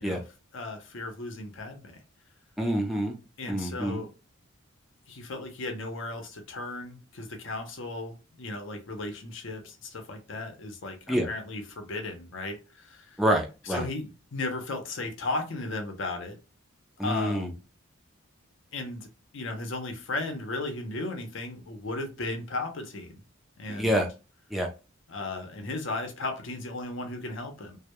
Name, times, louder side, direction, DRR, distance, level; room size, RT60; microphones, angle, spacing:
voice 1, 0.5-2.0 3.4-4.1 5.1-13.2 13.7-16.4 17.0-17.6 18.7-19.1 19.3-23.2 23.6-24.0 25.1-27.8, left 2 dB, 60° left, 0.6 m, -35 dB
voice 2, 2.6-3.1 3.5-4.0 11.1-11.3 13.2-13.9 17.0-17.5 23.7-24.1 24.5-24.7, equal, ahead, 0.4 m, -27 dB
2.1 x 2.0 x 2.8 m
head